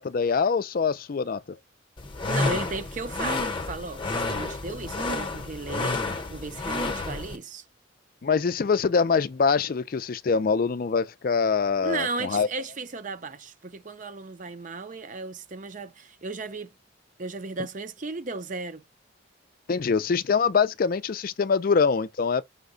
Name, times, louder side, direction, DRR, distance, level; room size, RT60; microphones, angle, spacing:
voice 1, 0.0-1.6 8.2-12.5 19.7-22.4, left 5 dB, 45° left, 0.4 m, -24 dB
sound 1, 2.0-7.4, left 3 dB, 25° left, 0.8 m, -30 dB
voice 2, 2.2-7.6 11.8-16.7 17.2-18.8, right 3 dB, 40° right, 0.6 m, -35 dB
5.6 x 2.2 x 3.8 m
head